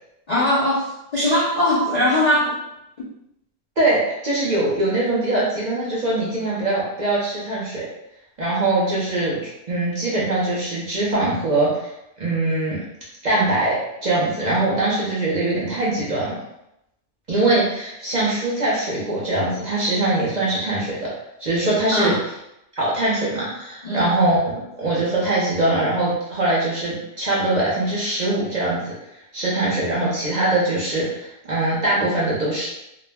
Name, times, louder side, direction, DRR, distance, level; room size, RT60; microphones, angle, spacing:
voice 1, 0.3-2.6 21.9-22.2 23.8-24.1, left 1 dB, 55° left, -8 dB, 0.4 m, -20 dB
voice 2, 3.8-7.8 8.4-9.4 9.7-11.9 12.2-12.8 13.2-13.7 14.0-16.4 17.3-21.1 21.4-22.1 22.8-24.4 24.8-28.9 29.3-32.7, right 2 dB, 45° right, -6 dB, 0.6 m, -22 dB
2.3 x 2.0 x 3.3 m, 0.84 s
omnidirectional pair, 1.3 m